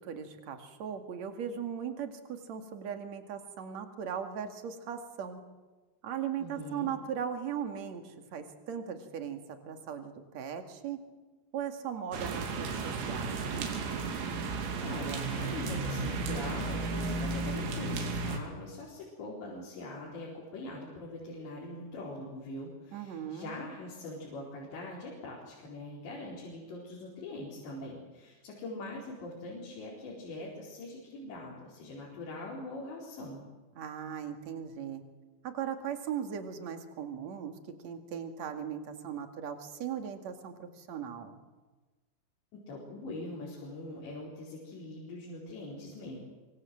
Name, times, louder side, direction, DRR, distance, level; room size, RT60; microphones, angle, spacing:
voice 1, 0.0-5.4 6.0-9.4 9.7-11.0 11.5-13.8 22.9-23.5 33.8-35.0 35.4-37.5 37.8-41.4, right 8 dB, 45° right, 6 dB, 2.8 m, -38 dB
voice 2, 6.4-6.9 14.8-33.4 42.5-46.2, left 2 dB, 70° left, -5 dB, 6.6 m, -42 dB
sound 1, 12.1-18.4, right 3 dB, 85° right, 5.2 m, -34 dB
24.5 x 24.5 x 7.8 m, 1.3 s
omnidirectional pair, 5.2 m